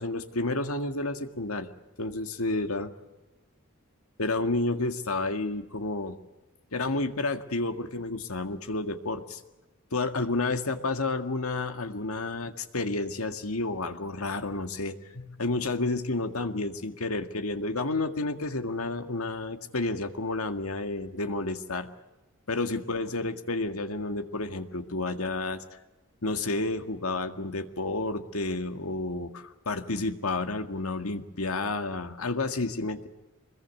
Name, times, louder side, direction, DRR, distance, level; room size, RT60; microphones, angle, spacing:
voice 1, 0.0-1.7 2.0-2.9 4.2-6.2 6.7-9.4 9.9-21.9 22.5-25.6 26.2-33.1, left 2 dB, 85° left, 7 dB, 1.9 m, -30 dB
25.0 x 21.5 x 8.3 m, 1.1 s
head